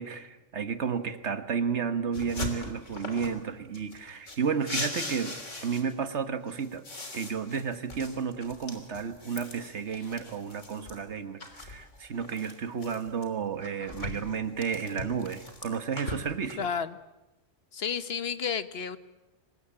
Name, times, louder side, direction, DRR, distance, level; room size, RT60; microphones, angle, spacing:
voice 1, 0.0-6.8 7.1-16.7, right 6 dB, 65° right, 10 dB, 1.7 m, -32 dB
sound 1, 2.1-3.4 3.7-6.1 6.5-11.0 11.4-13.2 13.6-16.5, left 2 dB, 75° left, 3.6 m, -40 dB
voice 2, 16.6-17.0 17.7-19.0, left 7 dB, 55° left, 13 dB, 1.3 m, -31 dB
24.5 x 20.5 x 8.7 m, 1.0 s
omnidirectional pair, 1.3 m